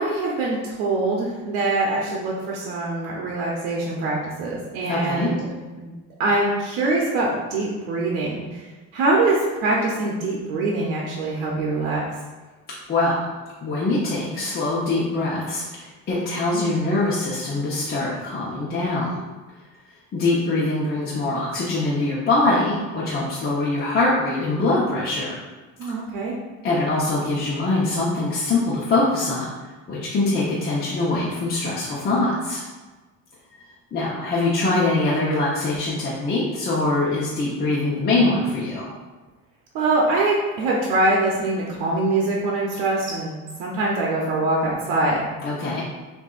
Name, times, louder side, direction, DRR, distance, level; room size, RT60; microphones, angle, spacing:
voice 1, 0.0-5.4 5.8-8.7 8.9-12.0 25.8-26.3 39.7-43.3 43.6-45.3, right 2 dB, 85° right, -3 dB, 0.8 m, -23 dB
voice 2, 4.9-5.3 12.9-13.3 13.6-19.1 20.1-25.3 26.6-29.5 29.9-32.6 33.9-38.9 45.4-45.8, left 2 dB, 30° left, -8 dB, 0.9 m, -23 dB
6.2 x 2.7 x 2.5 m, 1.2 s
cardioid pair, 120°, 30 cm